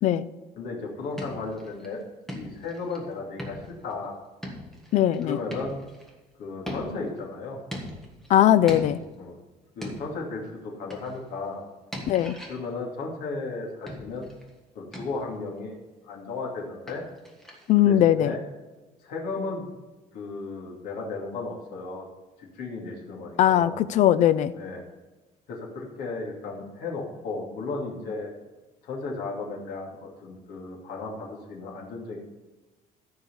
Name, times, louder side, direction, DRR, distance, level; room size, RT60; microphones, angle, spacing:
voice 1, 0.6-2.0 2.3-4.1 5.2-5.8 6.4-7.6 9.2-9.4 9.8-11.6 12.5-14.3 14.7-17.0 17.8-18.4 19.0-19.7 20.1-22.1 22.4-23.8 24.5-24.8 25.5-28.3 28.8-32.2, left 3 dB, 75° left, -2 dB, 2.6 m, -35 dB
sound 1, 1.0-1.9 2.3-3.0 3.4-4.0 4.4-6.1 6.6-7.2 7.7-8.4 8.7-9.3 9.8-10.4 10.9-11.3 11.9-12.7 13.9-14.5 14.9-15.4 16.9-17.7, equal, ahead, 1.5 m, -40 dB
voice 2, 4.9-5.4 8.3-9.0 12.1-12.4 17.7-18.3 23.4-24.5, left 11 dB, 50° left, 15 dB, 0.5 m, -20 dB
14.0 x 4.8 x 7.0 m, 1.2 s
cardioid pair, 170°, 16 cm